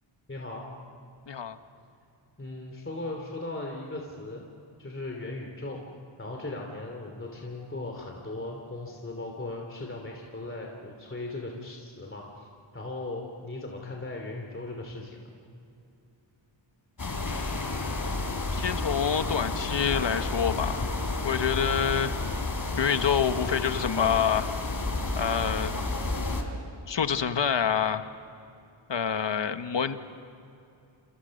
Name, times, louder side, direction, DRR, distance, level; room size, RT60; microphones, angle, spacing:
voice 1, 0.3-0.6 2.4-4.4 4.8-5.9 6.2-12.5 12.7-15.3, left 2 dB, 25° left, 0 dB, 3.0 m, -38 dB
voice 2, 1.3-1.6 17.0-18.0 18.5-20.9 21.2-22.2 22.8-24.5 25.1-25.7 26.9-28.0 28.9-30.2, left 7 dB, 65° left, 9 dB, 1.4 m, -27 dB
sound 1, 17.0-26.4, left 3 dB, 40° left, 3.5 m, -31 dB
29.0 x 28.5 x 6.6 m, 2.7 s
wide cardioid pair, 130°, 48 cm